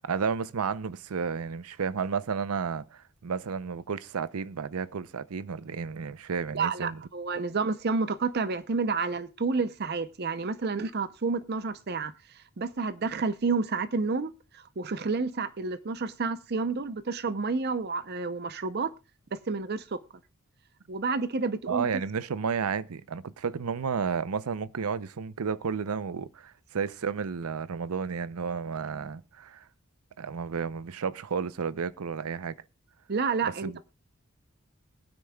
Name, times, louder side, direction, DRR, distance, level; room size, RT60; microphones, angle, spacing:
voice 1, 0.0-7.0 21.7-29.7 30.2-32.6 33.4-33.8, right 6 dB, 85° right, 0.6 m, -32 dB
voice 2, 6.5-12.1 12.6-18.9 19.3-20.0 20.9-21.9 33.1-33.9, right 4 dB, 45° right, 0.6 m, -30 dB
21.0 x 9.6 x 2.3 m
head